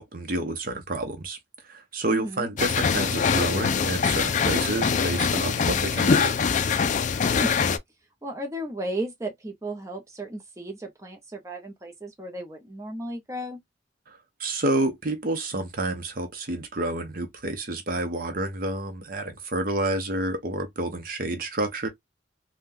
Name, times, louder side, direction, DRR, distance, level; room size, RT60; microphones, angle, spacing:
voice 1, 0.0-1.4 1.7-6.4 14.1-21.9, right 2 dB, 50° right, 0.7 m, -29 dB
voice 2, 2.1-2.5 7.3-7.7 8.2-13.6, right 1 dB, 15° right, 0.7 m, -34 dB
sound 1, 2.6-7.8, left 6 dB, 40° left, 0.4 m, -23 dB
3.6 x 2.2 x 2.5 m
head